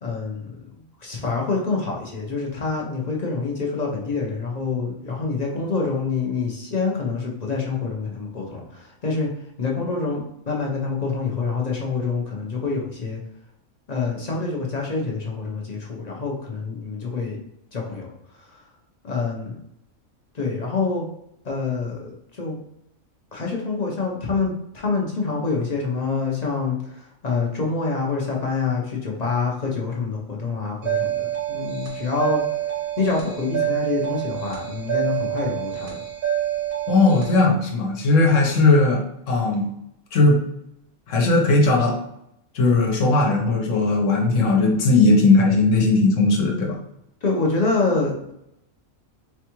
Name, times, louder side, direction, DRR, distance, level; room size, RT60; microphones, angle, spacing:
voice 1, 0.0-0.7 1.0-9.3 9.6-13.2 13.9-17.4 17.7-18.6 19.0-19.6 20.3-21.0 21.4-22.6 23.3-32.4 33.0-36.0 47.2-48.3, left 4 dB, 45° left, -1 dB, 0.5 m, -26 dB
sound 1, 30.8-37.4, right 11 dB, 80° right, 1.3 m, -27 dB
voice 2, 36.9-39.7 40.1-40.4 41.1-42.0 42.5-46.8, left 3 dB, 65° left, 1 dB, 1.1 m, -18 dB
4.3 x 2.3 x 2.9 m, 0.78 s
omnidirectional pair, 1.4 m